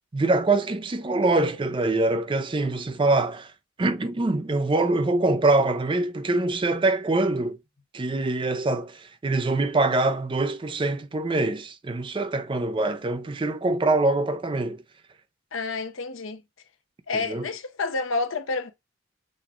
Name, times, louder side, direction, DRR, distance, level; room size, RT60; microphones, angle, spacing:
voice 1, 0.1-3.5 3.8-7.6 7.9-14.8 17.3-17.4, right 2 dB, 25° right, 0.4 m, -24 dB
voice 2, 15.5-16.4 17.1-18.7, left 3 dB, 80° left, 0.7 m, -29 dB
6.3 x 2.2 x 3.6 m
head